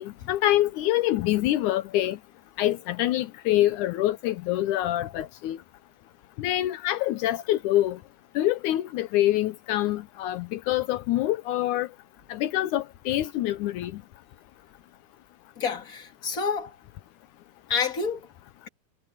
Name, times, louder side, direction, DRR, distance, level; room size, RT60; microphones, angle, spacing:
voice 1, 0.0-2.2 2.6-5.6 6.4-8.0 8.3-11.9 12.3-14.0, left 14 dB, 90° left, 1.7 m, -25 dB
voice 2, 15.6-16.8 17.7-18.3, left 6 dB, 25° left, 2.3 m, -28 dB
omnidirectional pair, 4.5 m